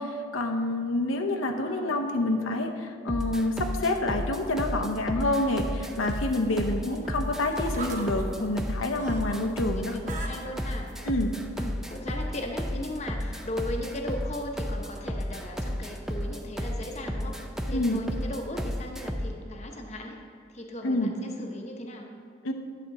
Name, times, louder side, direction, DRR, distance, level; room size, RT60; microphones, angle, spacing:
voice 1, 0.0-10.0 11.0-11.3 17.7-18.0 20.8-21.1 22.4-22.5, left 2 dB, 85° left, 3 dB, 0.7 m, -28 dB
voice 2, 1.4-2.1 9.3-10.9 11.6-17.4 17.6-20.2 20.5-22.1, left 1 dB, 35° left, 2 dB, 0.8 m, -38 dB
sound 1, 3.1-19.4, equal, ahead, 0.3 m, -33 dB
sound 2, 6.0-9.4 9.7-10.9 11.7-11.8, right 2 dB, 40° right, 0.9 m, -41 dB
11.0 x 4.3 x 6.4 m, 2.2 s
head